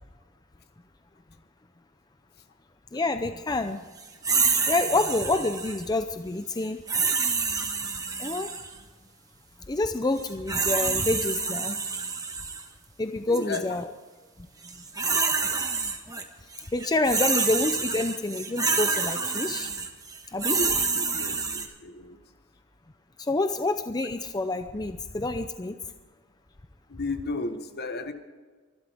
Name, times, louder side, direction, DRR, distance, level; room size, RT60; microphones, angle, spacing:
voice 1, 2.9-3.8 4.6-6.8 8.2-8.5 9.7-11.8 13.0-13.9 15.1-15.2 16.7-19.7 20.3-20.6 23.2-25.8, left 2 dB, 20° left, 8 dB, 0.6 m, -27 dB
sound 1, 4.2-5.8 6.9-8.7 10.2-12.6 13.3-13.6 14.6-16.2 16.5-21.7, right 4 dB, 20° right, 1.4 m, -27 dB
voice 2, 13.3-13.7 20.4-22.2 26.9-28.1, left 2 dB, 50° left, 8 dB, 1.3 m, -34 dB
24.5 x 12.5 x 3.5 m, 1.4 s
head